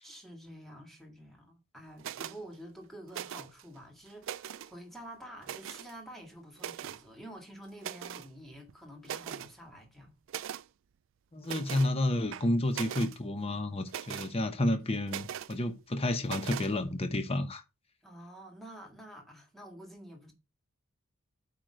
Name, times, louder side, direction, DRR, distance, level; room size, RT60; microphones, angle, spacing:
voice 1, 0.0-10.2 18.0-20.3, right 1 dB, ahead, 1.9 m, -49 dB
sound 1, 2.0-2.4 3.1-3.6 4.1-4.7 5.4-5.9 6.6-7.0 7.8-8.3 8.7-8.8 9.0-9.5 10.3-10.6 11.4-11.9 12.3-13.2 13.9-14.3 15.1-15.5 16.2-16.7, right 10 dB, 60° right, 0.3 m, -40 dB
voice 2, 11.3-17.6, left 1 dB, 30° left, 0.8 m, -30 dB
8.9 x 3.1 x 6.2 m
head